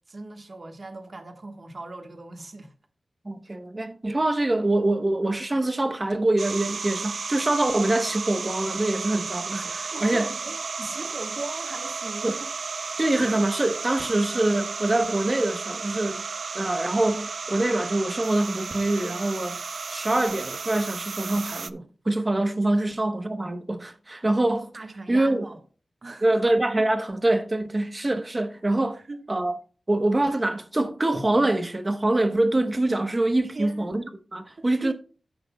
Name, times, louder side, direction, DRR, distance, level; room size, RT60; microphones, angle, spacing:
voice 1, 0.1-2.7 9.9-12.5 22.8-22.9 24.7-25.6 26.0-26.4 28.9-29.3 33.5-34.1 34.6-34.9, right 2 dB, 45° right, 1.3 m, -39 dB
voice 2, 3.2-10.3 12.2-12.3 13.0-16.3 16.5-19.6 19.9-24.7 25.1-25.4 26.2-29.0 29.3-29.6 29.9-34.0 34.3-34.9, right 2 dB, 25° right, 1.0 m, -24 dB
sound 1, 6.4-21.7, right 4 dB, 65° right, 0.4 m, -33 dB
14.5 x 6.3 x 2.2 m
wide cardioid pair, 130°, 0 cm